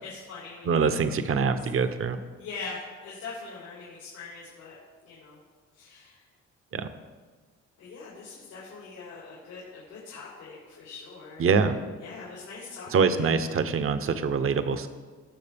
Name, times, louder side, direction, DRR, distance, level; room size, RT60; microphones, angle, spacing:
voice 1, 0.0-1.5 2.4-4.8 5.0-5.4 5.8-6.2 7.8-11.4 12.0-12.9 13.2-13.4, left 4 dB, 90° left, -7 dB, 3.5 m, -42 dB
voice 2, 0.6-2.2 6.7-6.9 11.4-11.8 12.9-14.9, right 5 dB, 45° right, 9 dB, 0.8 m, -24 dB
19.0 x 6.6 x 3.5 m, 1.4 s
cardioid pair, 90°, 30 cm